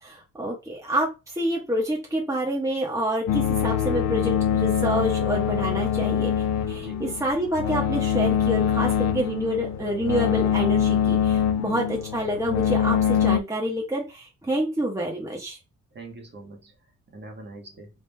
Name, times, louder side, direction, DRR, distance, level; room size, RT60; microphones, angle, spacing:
voice 1, 0.0-6.3 6.7-15.6, equal, 10° right, -1 dB, 1.1 m, -27 dB
sound 1, 3.3-13.4, left 8 dB, 65° left, 0.5 m, -24 dB
voice 2, 15.9-16.7 17.1-17.9, right 2 dB, 35° right, 2 dB, 1.4 m, -43 dB
3.8 x 3.5 x 2.2 m, 0.26 s
cardioid pair, 90°, 30 cm